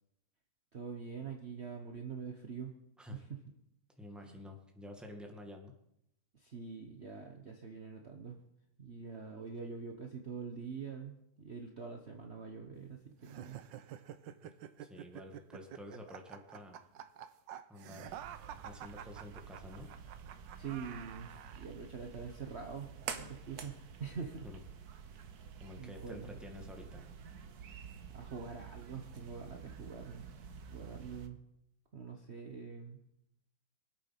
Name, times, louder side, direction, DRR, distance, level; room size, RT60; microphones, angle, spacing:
voice 1, 0.7-2.7 3.1-3.4 4.3-4.4 6.3-8.4 8.8-13.6 20.6-21.3 21.5-24.5 25.8-26.4 27.7-27.8 28.1-30.3 30.7-31.4 31.9-33.0, right 5 dB, 40° right, 3 dB, 1.3 m, -45 dB
voice 2, 4.0-5.7 14.4-14.5 14.8-16.9 17.7-18.2 18.6-19.9 24.4-24.6 25.6-27.0, left 1 dB, ahead, 2 dB, 1.8 m, -50 dB
sound 1, 13.2-21.7, right 10 dB, 85° right, 1.5 m, -49 dB
sound 2, 18.1-31.3, right 7 dB, 60° right, 1.5 m, -49 dB
23.0 x 8.6 x 5.9 m, 0.80 s
omnidirectional pair, 1.9 m